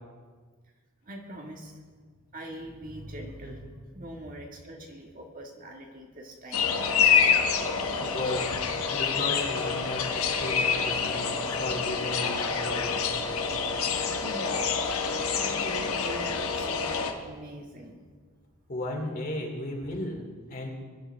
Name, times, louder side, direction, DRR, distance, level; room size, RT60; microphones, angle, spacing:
voice 1, 1.0-1.8 2.3-7.2 14.0-14.6 14.9-18.0, right 1 dB, 40° right, 1 dB, 1.7 m, -43 dB
sound 1, 6.5-17.1, left 6 dB, 75° left, 1.3 m, -27 dB
voice 2, 8.0-8.6 8.9-13.5 18.7-20.7, left 1 dB, 40° left, 0 dB, 2.8 m, -35 dB
22.5 x 11.0 x 3.4 m, 1.5 s
head